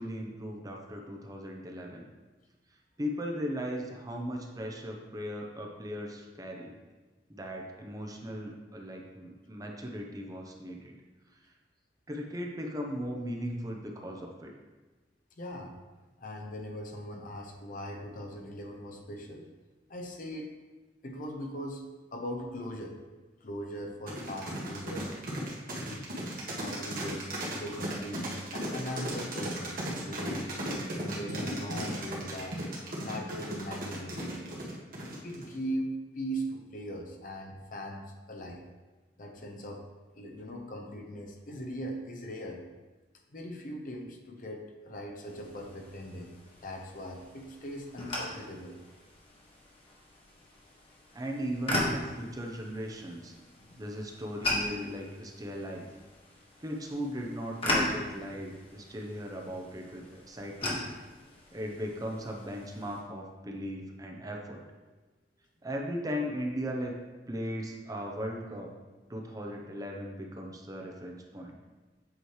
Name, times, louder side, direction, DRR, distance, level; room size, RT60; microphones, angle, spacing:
voice 1, 0.0-2.1 3.0-6.8 7.3-10.9 12.1-14.5 51.1-53.4 53.8-55.9 56.6-60.8 61.5-64.7 65.6-67.0 67.3-68.7 69.1-71.5, equal, 20° right, 1 dB, 0.7 m, -37 dB
voice 2, 15.4-15.7 16.2-19.5 19.9-20.6 21.0-21.8 22.1-23.0 23.4-25.1 26.6-30.5 30.8-32.6 33.0-34.6 35.2-38.6 39.2-39.8 40.2-42.6 43.3-46.3 46.6-48.7 53.7-53.8, equal, 50° left, 2 dB, 0.8 m, -40 dB
sound 1, 24.1-35.5, right 1 dB, 55° right, 1.4 m, -36 dB
sound 2, 45.2-63.0, left 1 dB, 35° left, 1.3 m, -38 dB
8.0 x 3.1 x 4.8 m, 1.2 s
head